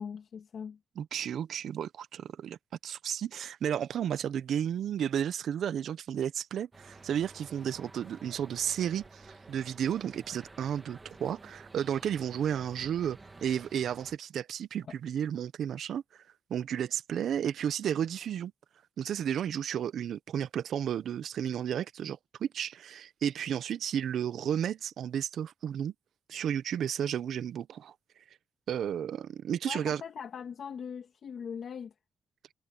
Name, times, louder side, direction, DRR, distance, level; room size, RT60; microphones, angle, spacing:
voice 1, 0.0-0.8 29.7-31.9, left 7 dB, 50° left, 2.2 m, -40 dB
voice 2, 1.0-2.6 2.8-16.0 16.5-18.5 19.0-25.9 26.3-27.9 28.7-30.0, right 9 dB, 65° right, 0.5 m, -33 dB
sound 1, 6.7-14.2, right 3 dB, 15° right, 1.3 m, -52 dB
wide cardioid pair, 175°, 0 cm